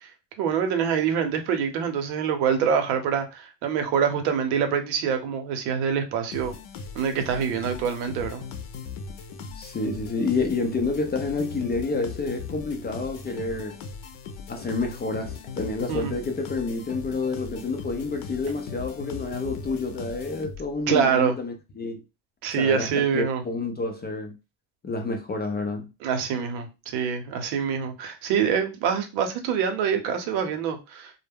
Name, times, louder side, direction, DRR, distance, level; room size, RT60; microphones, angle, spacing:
voice 1, 0.4-6.5 6.9-8.4 15.9-16.1 20.9-21.3 22.4-23.4 26.0-31.1, right 7 dB, 90° right, 0.8 m, -25 dB
sound 1, 6.3-20.9, left 5 dB, 70° left, 0.7 m, -39 dB
voice 2, 9.5-13.8 14.5-22.0 22.6-24.4 24.8-25.9, left 3 dB, 25° left, 0.3 m, -29 dB
2.2 x 2.1 x 3.4 m
supercardioid pair, 95°, 48 cm